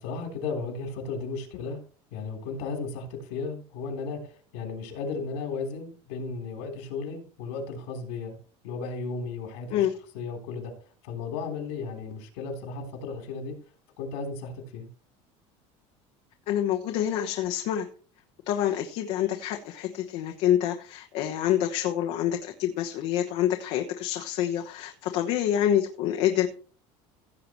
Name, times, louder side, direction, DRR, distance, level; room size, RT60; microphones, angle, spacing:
voice 1, 0.0-1.8 2.1-8.3 8.6-9.9 10.1-10.7 11.0-13.6 14.0-14.9, left 4 dB, 85° left, 3 dB, 3.6 m, -35 dB
voice 2, 16.5-17.9 18.5-26.5, left 11 dB, 55° left, 4 dB, 1.1 m, -27 dB
16.0 x 7.6 x 3.1 m, 0.40 s
cardioid pair, 165°, 13 cm